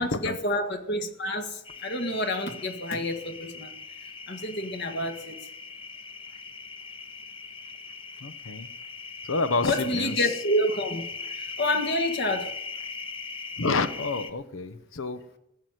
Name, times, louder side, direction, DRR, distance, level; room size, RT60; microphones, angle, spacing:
voice 1, 0.0-3.7 4.3-5.4 9.7-11.0 11.6-12.5, left 1 dB, 55° left, 6 dB, 1.9 m, -28 dB
sound 1, 1.6-14.3, left 4 dB, 25° left, 0.9 m, -40 dB
voice 2, 8.2-8.7 9.2-10.4 13.6-15.4, left 3 dB, 75° left, 12 dB, 0.9 m, -29 dB
15.0 x 8.0 x 9.1 m, 0.82 s
head